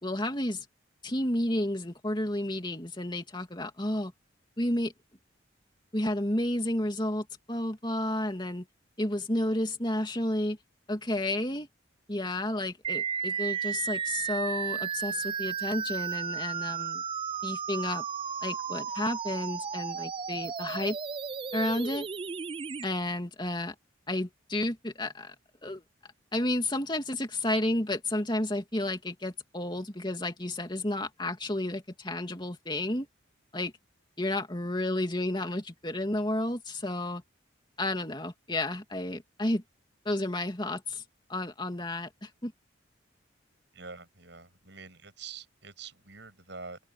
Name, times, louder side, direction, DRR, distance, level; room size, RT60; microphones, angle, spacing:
voice 1, 0.0-0.7 1.0-4.1 4.6-4.9 5.9-8.6 9.0-10.6 10.9-11.7 12.1-17.0 17.4-18.0 18.4-21.0 21.5-22.1 22.8-23.7 24.1-25.3 25.6-25.8 26.3-33.1 33.5-33.7 34.2-37.2 37.8-39.6 40.0-41.0 41.3-42.5, left 1 dB, 25° left, 2.8 m, -31 dB
sound 1, 12.8-22.8, right 6 dB, 25° right, 0.3 m, -34 dB
voice 2, 43.7-46.8, right 4 dB, 60° right, 7.5 m, -46 dB
head